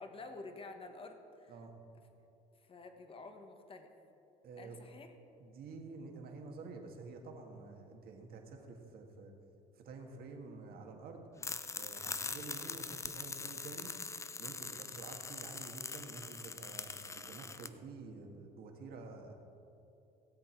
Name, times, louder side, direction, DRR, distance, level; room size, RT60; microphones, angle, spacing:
voice 1, 0.0-1.5 2.5-3.9 4.6-5.1, left 3 dB, 35° left, 6 dB, 1.2 m, -50 dB
voice 2, 4.4-4.8 5.4-9.3 9.8-11.3 11.7-13.9 14.4-19.3, right 3 dB, 65° right, 2 dB, 1.7 m, -49 dB
sound 1, 11.4-17.7, left 4 dB, 15° left, 0.4 m, -43 dB
17.0 x 7.9 x 4.5 m, 2.8 s
cardioid pair, 110°, 17 cm